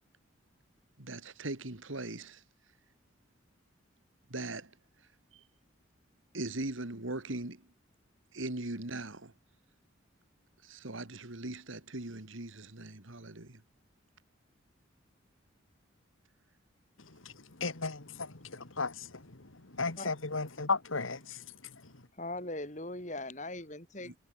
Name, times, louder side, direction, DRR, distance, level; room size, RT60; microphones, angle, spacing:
voice 1, 1.0-2.4 4.3-4.7 5.3-5.4 6.3-7.6 8.3-9.3 10.6-13.6 24.0-24.2, right 2 dB, 75° right, 2.4 m, -40 dB
voice 2, 17.6-21.4 21.8-21.9, left 4 dB, 80° left, 2.2 m, -35 dB
voice 3, 22.2-24.2, left 2 dB, 35° left, 5.8 m, -40 dB
head